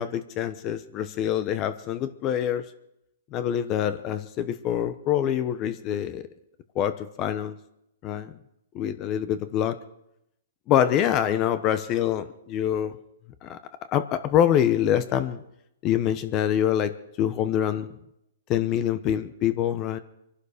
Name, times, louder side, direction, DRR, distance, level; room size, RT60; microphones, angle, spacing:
voice 1, 0.0-2.7 3.3-6.2 6.7-7.6 8.0-8.3 8.7-9.8 10.7-12.9 13.4-13.6 13.9-15.4 15.8-16.9 17.2-17.9 18.5-20.0, left 10 dB, 30° left, 12 dB, 1.0 m, -25 dB
24.0 x 11.5 x 5.1 m, 0.81 s
hypercardioid pair, 145°, 0 cm